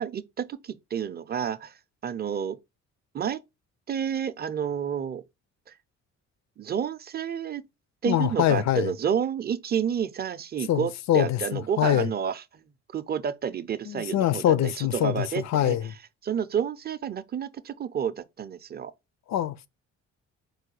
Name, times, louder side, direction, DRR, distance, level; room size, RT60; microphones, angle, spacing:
voice 1, 0.0-1.7 2.0-2.6 3.1-3.4 3.9-5.2 6.6-7.7 8.0-12.6 12.9-15.8 16.2-18.9, right 8 dB, 35° right, 0.5 m, -30 dB
voice 2, 8.1-8.9 10.7-12.1 13.9-15.9 19.3-19.7, left 12 dB, 65° left, 0.5 m, -24 dB
4.6 x 2.2 x 4.7 m
cardioid pair, 90°, 30 cm